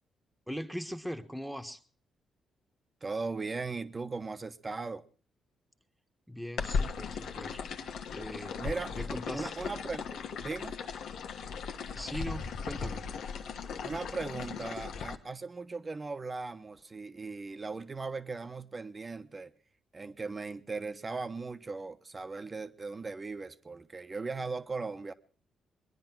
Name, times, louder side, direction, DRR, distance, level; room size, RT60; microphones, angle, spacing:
voice 1, 0.5-1.8 6.3-7.6 8.1-8.6 9.0-9.5 11.9-13.1, equal, ahead, 1.4 m, -40 dB
voice 2, 3.0-5.0 8.5-10.1 10.4-10.8 13.8-19.5 19.9-25.1, right 4 dB, 30° right, 1.1 m, -38 dB
sound 1, 6.6-15.2, left 5 dB, 80° left, 1.3 m, -37 dB
21.5 x 10.5 x 6.0 m
cardioid pair, 85°, 0 cm